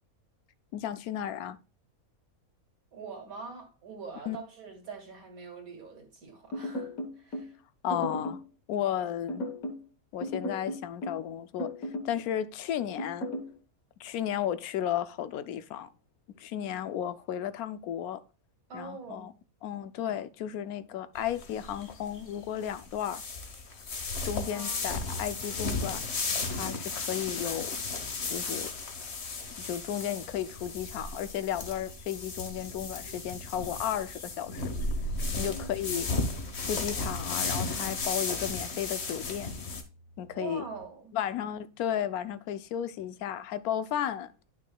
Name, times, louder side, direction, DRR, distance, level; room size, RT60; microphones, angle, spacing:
voice 1, 0.7-1.6 4.3-4.4 7.8-8.4 8.7-9.4 10.1-11.7 12.0-13.3 14.0-15.9 16.4-18.2 18.7-19.3 19.6-23.2 24.2-26.0 26.5-27.8 28.3-28.7 29.6-34.6 35.4-36.1 36.6-39.5 40.2-40.6 41.1-44.3, left 10 dB, 90° left, 1.1 m, -34 dB
voice 2, 2.9-6.9 7.2-7.6 18.7-19.3 24.5-24.9 35.3-35.7 40.3-41.1, right 4 dB, 75° right, 2.5 m, -43 dB
sound 1, 6.5-7.5 7.9-8.5 9.3-9.8 10.2-11.2 11.6-12.2 13.0-13.5, left 1 dB, 75° left, 1.7 m, -35 dB
sound 2, 21.2-39.8, left 3 dB, 50° left, 1.4 m, -35 dB
sound 3, 34.6-40.8, right 1 dB, 30° left, 2.7 m, -49 dB
11.0 x 6.0 x 2.3 m
omnidirectional pair, 1.5 m